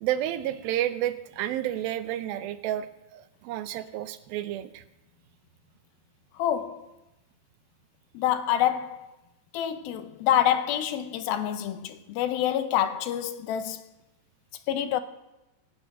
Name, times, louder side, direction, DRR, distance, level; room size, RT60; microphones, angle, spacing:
voice 1, 0.0-4.8, right 12 dB, 85° right, 2.6 m, -31 dB
voice 2, 6.4-6.9 8.1-9.1 9.5-13.9 14.7-15.0, left 11 dB, 90° left, 2.6 m, -27 dB
17.5 x 8.7 x 5.9 m
omnidirectional pair, 4.2 m